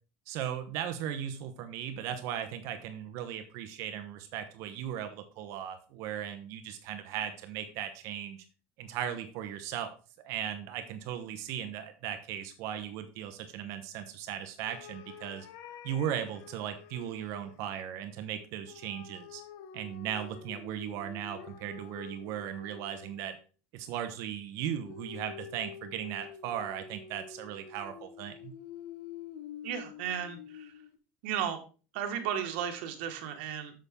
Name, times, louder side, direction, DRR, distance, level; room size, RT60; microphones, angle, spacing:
voice 1, 0.3-8.4 8.8-9.9 10.2-15.5 15.8-19.4 19.7-23.3 23.7-28.5, right 10 dB, 55° right, 8 dB, 1.0 m, -37 dB
sound 1, 14.6-17.6 18.7-23.4 24.9-31.0, left 8 dB, 60° left, 1.2 m, -48 dB
voice 2, 29.6-30.7 31.2-31.6 31.9-33.8, right 9 dB, 80° right, 6 dB, 1.7 m, -34 dB
8.8 x 7.1 x 3.7 m, 0.36 s
cardioid pair, 155°, 6 cm